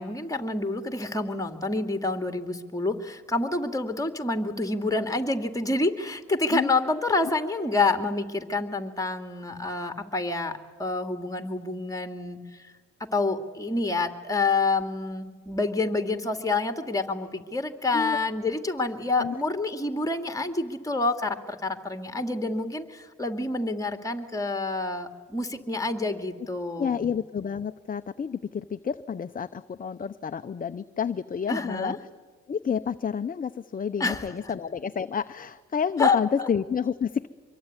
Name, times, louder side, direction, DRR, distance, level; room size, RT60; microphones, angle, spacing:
voice 1, 0.0-12.7 13.1-27.1 31.5-32.0 34.0-34.5 36.0-36.5, left 3 dB, 10° left, 8 dB, 2.6 m, -28 dB
voice 2, 26.8-31.9 32.5-37.3, left 7 dB, 30° left, 10 dB, 0.8 m, -29 dB
25.0 x 23.0 x 9.8 m, 1.5 s
cardioid pair, 90°, 30 cm